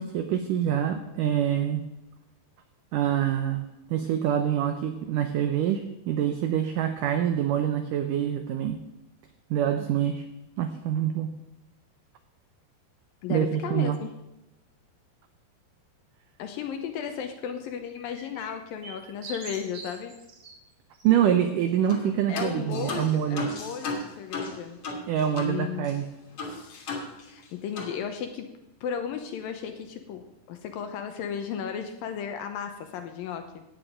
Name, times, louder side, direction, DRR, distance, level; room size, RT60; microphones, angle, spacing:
voice 1, 0.0-1.8 2.9-8.8 9.5-10.2 10.6-11.3 13.3-14.0 21.0-23.5 25.1-26.1, right 10 dB, 85° right, 7 dB, 1.8 m, -26 dB
voice 2, 13.2-14.1 16.4-20.1 22.3-24.8 25.3-25.9 27.3-28.5 28.8-33.6, left 8 dB, 75° left, 6 dB, 2.3 m, -35 dB
sound 1, 18.0-20.5 20.9-21.1, right 4 dB, 50° right, 2.6 m, -44 dB
sound 2, 21.9-22.1 22.4-25.6 25.8-25.9 26.4-27.5 27.8-28.0, left 2 dB, 45° left, 2.3 m, -35 dB
15.5 x 9.0 x 5.0 m, 0.95 s
omnidirectional pair, 4.7 m